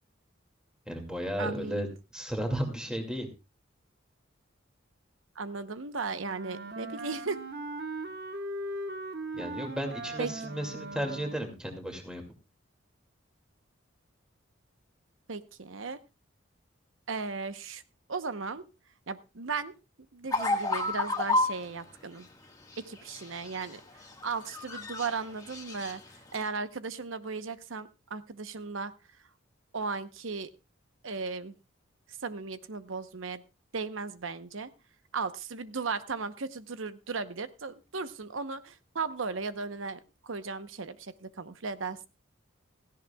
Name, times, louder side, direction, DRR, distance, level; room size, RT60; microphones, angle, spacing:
voice 1, 0.9-1.9 2.1-3.3 9.3-12.2, equal, 5° right, 3 dB, 2.3 m, -34 dB
voice 2, 1.4-1.9 5.4-7.4 10.2-10.3 15.3-16.0 17.1-17.8 18.1-18.7 19.1-19.7 20.1-22.3 22.8-23.8 24.2-26.0 26.3-28.9 29.7-30.5 31.0-31.5 32.2-33.4 33.7-34.7 35.1-42.1, right 4 dB, 80° right, 12 dB, 0.9 m, -36 dB
Wind instrument woodwind instrument, 6.1-11.6, right 2 dB, 55° right, 1.2 m, -39 dB
sound 1, 20.3-21.6 23.0-23.7 24.0-25.1 25.4-25.9 26.3-26.5, left 2 dB, 20° left, 1.6 m, -30 dB
17.0 x 15.0 x 2.3 m, 0.27 s
head